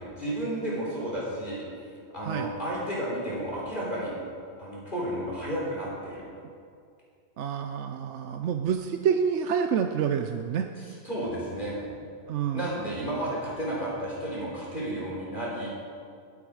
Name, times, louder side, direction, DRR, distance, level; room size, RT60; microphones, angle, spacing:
voice 1, 0.0-1.6 2.1-4.1 4.6-6.2 10.8-11.9 12.5-15.7, right 1 dB, 35° left, -6 dB, 4.0 m, -32 dB
voice 2, 7.4-10.7 12.3-12.7, right 7 dB, 65° right, 6 dB, 0.9 m, -28 dB
20.5 x 8.5 x 4.9 m, 2.3 s
omnidirectional pair, 1.4 m